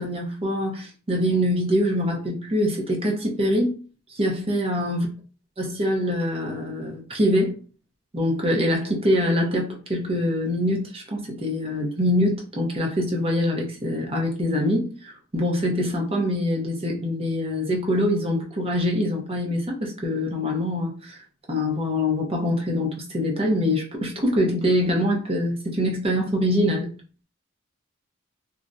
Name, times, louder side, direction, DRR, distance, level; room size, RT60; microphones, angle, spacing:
voice 1, 0.0-3.7 4.1-5.1 5.6-7.6 8.1-21.2 21.5-26.9, left 1 dB, 30° right, 0.6 m, -24 dB
2.4 x 2.0 x 2.5 m
head